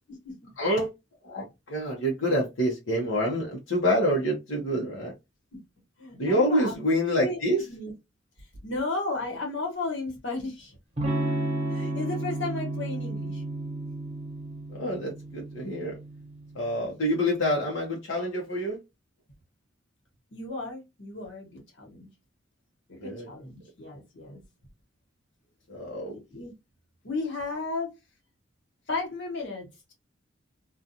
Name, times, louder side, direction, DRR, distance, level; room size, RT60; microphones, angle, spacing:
voice 1, 0.6-0.9 1.2-5.1 6.2-7.6 14.7-16.0 16.5-18.8 23.0-23.3 25.7-26.1, equal, 85° left, 0.8 m, -27 dB
voice 2, 6.0-6.7 7.2-7.4 7.7-7.9 8.4-10.8 11.7-13.4 20.3-22.1 22.9-24.4 26.1-26.5 27.0-27.9 28.9-29.9, left 3 dB, 70° left, 1.2 m, -34 dB
Electric guitar / Strum, 11.0-16.7, right 2 dB, 35° right, 0.8 m, -32 dB
2.4 x 2.3 x 2.7 m
head